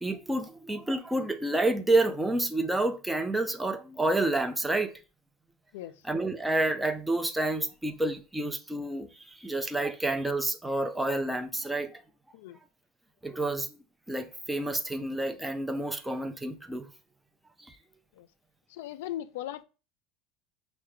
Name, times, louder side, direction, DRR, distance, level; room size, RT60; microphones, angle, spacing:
voice 1, 0.0-4.9 6.1-9.1 9.4-12.0 13.2-13.7 14.1-16.9 17.7-17.8, right 2 dB, 5° right, 0.3 m, -29 dB
voice 2, 18.7-19.6, left 13 dB, 85° left, 0.3 m, -38 dB
5.7 x 2.1 x 3.0 m
cardioid pair, 160°, 0 cm